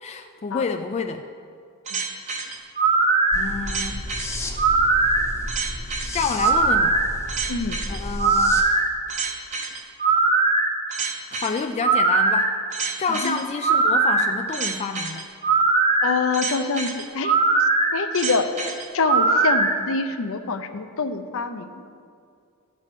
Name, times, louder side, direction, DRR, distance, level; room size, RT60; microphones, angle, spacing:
voice 1, 0.0-1.2 3.3-4.0 6.1-7.0 7.9-8.7 11.3-12.5 13.0-15.3, left 5 dB, 30° left, 5 dB, 0.3 m, -28 dB
sound 1, 1.9-19.7, right 3 dB, 35° right, 0.8 m, -21 dB
sound 2, 3.3-8.6, left 1 dB, 15° left, 0.8 m, -33 dB
voice 2, 16.0-17.3 17.9-18.5 18.9-21.8, left 4 dB, 65° left, 8 dB, 0.6 m, -25 dB
13.0 x 4.9 x 6.8 m, 2.3 s
head